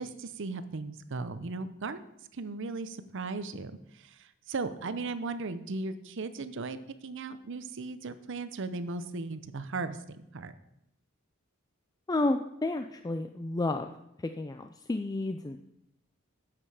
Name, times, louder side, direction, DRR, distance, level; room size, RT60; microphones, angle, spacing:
voice 1, 0.0-2.0 2.3-6.8 7.0-10.5, right 3 dB, 60° right, 12 dB, 0.7 m, -37 dB
voice 2, 12.1-13.9 14.2-15.6, left 2 dB, 20° left, 7 dB, 0.4 m, -31 dB
9.9 x 7.7 x 4.9 m, 0.83 s
head